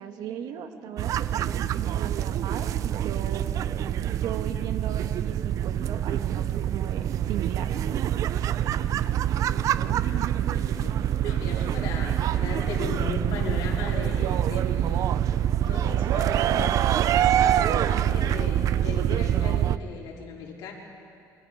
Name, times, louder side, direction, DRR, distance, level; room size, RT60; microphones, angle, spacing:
voice 1, 0.0-3.5 4.2-7.8, right 9 dB, 65° right, 6 dB, 1.6 m, -37 dB
sound 1, 1.0-19.8, right 10 dB, 50° right, 0.5 m, -25 dB
voice 2, 9.9-15.0 15.3-20.7, left 4 dB, 80° left, -2 dB, 4.3 m, -37 dB
27.5 x 24.0 x 5.0 m, 2.5 s
cardioid pair, 160°, 7 cm